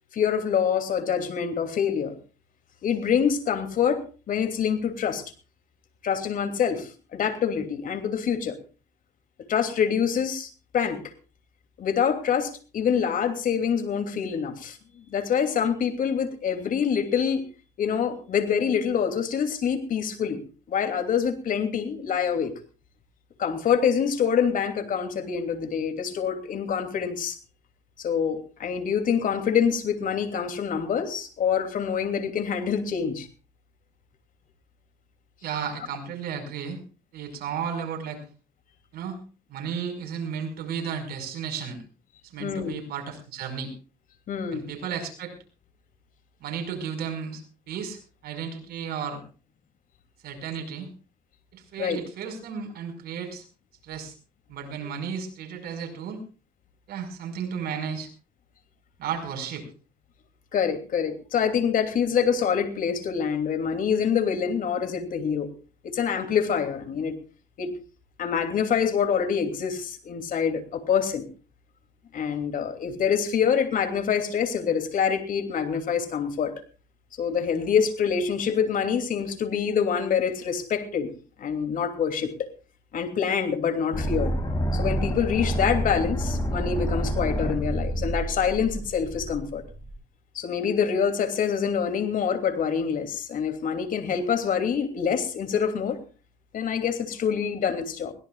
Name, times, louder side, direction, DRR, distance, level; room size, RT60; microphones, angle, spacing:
voice 1, 0.1-2.1 2.8-5.2 6.0-8.6 9.5-11.0 11.8-17.4 17.8-20.4 20.7-22.5 23.4-27.4 28.0-33.3 42.4-42.7 44.3-44.6 51.8-52.0 60.5-65.5 65.8-67.1 67.6-67.7 68.2-71.3 72.1-76.5 77.2-81.1 81.4-82.5 82.9-84.3 84.7-89.6 90.3-96.0 96.5-98.1, left 7 dB, 55° left, 8 dB, 2.9 m, -26 dB
voice 2, 35.4-36.8 37.1-38.2 38.9-39.2 39.5-41.8 42.3-43.7 44.5-45.3 46.4-49.2 50.2-50.9 51.5-53.4 53.8-54.1 54.5-56.2 56.9-58.1 59.0-59.7, right 7 dB, 65° right, 3 dB, 5.5 m, -33 dB
sound 1, 83.9-89.9, equal, 25° left, 6.9 m, -28 dB
22.0 x 17.5 x 2.5 m, 0.34 s
cardioid pair, 110°, 17 cm